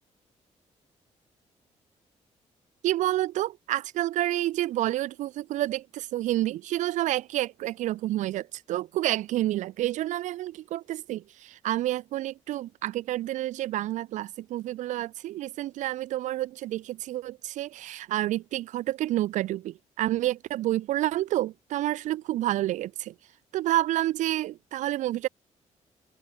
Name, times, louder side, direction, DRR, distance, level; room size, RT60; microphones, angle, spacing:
voice 1, 2.8-23.1 23.5-25.3, right 14 dB, 75° right, 0.4 m, -29 dB
open air
cardioid pair, 115°, 13 cm